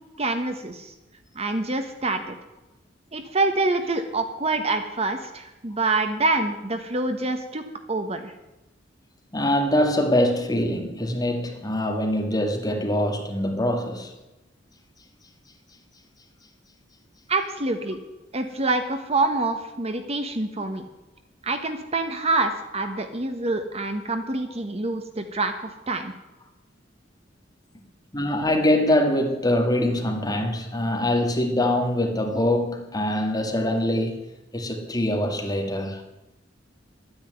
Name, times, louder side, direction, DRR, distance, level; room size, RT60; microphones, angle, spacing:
voice 1, 0.2-0.9 1.3-2.4 3.1-7.6 7.9-8.3 17.3-18.0 18.3-20.8 21.4-26.1, right 2 dB, 35° right, 1.2 m, -26 dB
voice 2, 9.3-14.1 22.9-23.0 28.1-34.2 34.5-36.0, left 1 dB, 20° left, 2.1 m, -23 dB
12.0 x 9.8 x 9.2 m
head